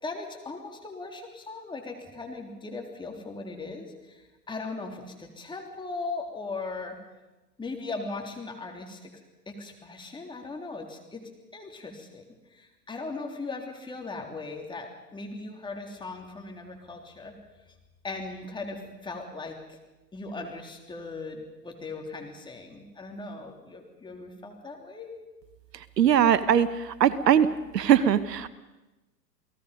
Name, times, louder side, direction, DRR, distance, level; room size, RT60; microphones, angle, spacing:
voice 1, 0.0-7.0 7.6-9.1 9.5-12.2 12.5-17.3 17.7-17.8 18.0-19.8 20.1-25.1, left 3 dB, 10° left, 2 dB, 3.4 m, -38 dB
voice 2, 26.0-27.5 27.7-28.5, right 9 dB, 70° right, 14 dB, 1.3 m, -21 dB
29.0 x 18.5 x 5.3 m, 1.1 s
hypercardioid pair, 115°, 50 cm